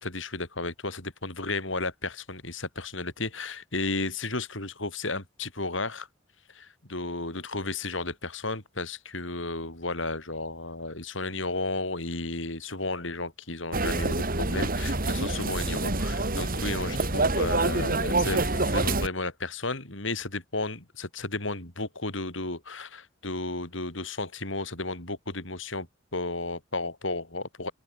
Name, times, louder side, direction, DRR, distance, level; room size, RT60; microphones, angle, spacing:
voice 1, 0.0-6.1 6.5-25.9 26.1-27.7, left 2 dB, 70° left, 5.8 m, -33 dB
sound 1, 13.7-19.1, right 2 dB, 50° right, 3.8 m, -27 dB
open air
head